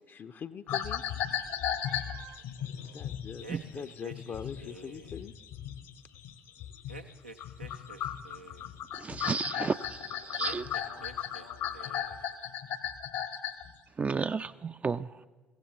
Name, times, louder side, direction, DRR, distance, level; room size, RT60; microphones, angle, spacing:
voice 1, 0.1-1.0 2.9-5.3, left 6 dB, 40° left, 11 dB, 0.5 m, -42 dB
sound 1, 0.7-7.1 7.4-13.7, left 9 dB, 65° left, 0.9 m, -36 dB
Meow, 1.8-2.5 3.3-3.4 3.9-4.0 7.9-8.0, right 10 dB, 50° right, 0.9 m, -51 dB
voice 2, 2.3-3.4 9.5-12.3, left 4 dB, 80° left, 8 dB, 1.5 m, -58 dB
sound 2, 3.4-5.3 6.9-8.7 10.4-11.5 11.7-12.3, right 3 dB, 90° right, 0.5 m, -48 dB
voice 3, 9.0-9.8 10.3-10.6 14.0-15.1, right 5 dB, 25° right, 11 dB, 0.3 m, -31 dB
22.0 x 16.0 x 3.1 m, 1.3 s
figure-of-eight pair, 50°, 6 cm